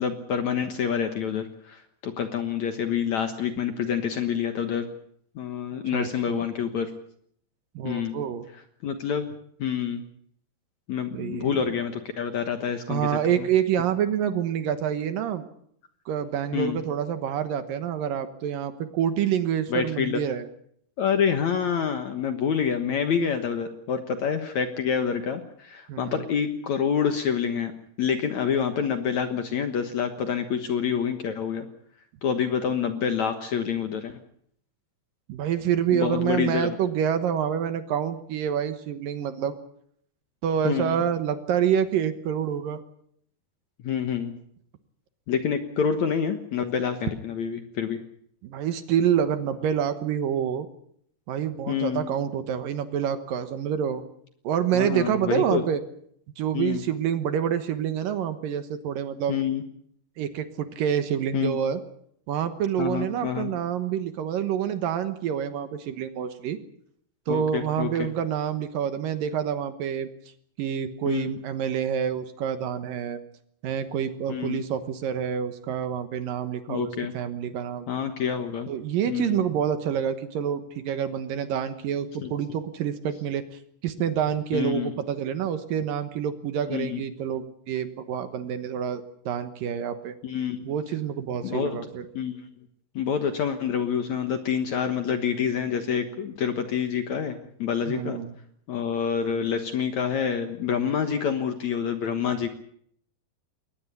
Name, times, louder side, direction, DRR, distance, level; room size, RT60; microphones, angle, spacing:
voice 1, 0.0-4.9 5.4-6.9 7.8-8.2 8.8-9.3 9.6-10.0 10.9-13.1 13.4-13.5 16.5-16.8 19.7-20.2 21.0-27.7 28.0-31.7 32.2-34.2 35.9-36.8 40.6-41.0 43.8-44.3 45.3-48.0 51.7-52.1 54.7-55.6 56.5-56.8 59.3-59.6 61.3-61.6 62.8-63.5 67.3-68.1 71.1-71.3 74.3-74.6 76.7-77.1 77.9-78.7 79.1-79.5 82.2-82.3 84.5-84.9 86.7-87.0 90.2-90.6 91.4-91.8 92.1-92.5 93.0-98.2 98.7-102.5, left 7 dB, 60° left, 8 dB, 2.1 m, -27 dB
voice 2, 5.9-6.4 7.8-8.4 11.1-11.6 12.9-15.4 16.1-20.5 25.9-26.2 35.3-39.5 40.4-42.8 48.4-50.7 51.3-54.0 54.4-55.8 56.4-59.3 60.2-61.8 62.3-66.6 67.3-70.1 70.6-73.2 73.6-77.9 78.7-83.4 83.8-90.2 90.7-92.1 97.9-98.3, right 9 dB, 65° right, 10 dB, 2.6 m, -27 dB
21.5 x 19.0 x 8.3 m, 0.67 s
omnidirectional pair, 4.7 m